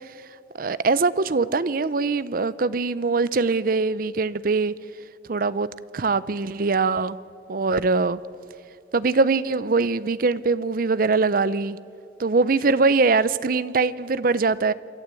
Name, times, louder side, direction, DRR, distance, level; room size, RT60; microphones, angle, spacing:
voice 1, 0.6-4.7 5.3-5.7 5.9-7.2 7.5-8.2 8.9-11.8 12.2-14.7, right 4 dB, 55° right, 17 dB, 0.6 m, -22 dB
27.0 x 12.5 x 8.4 m, 2.6 s
head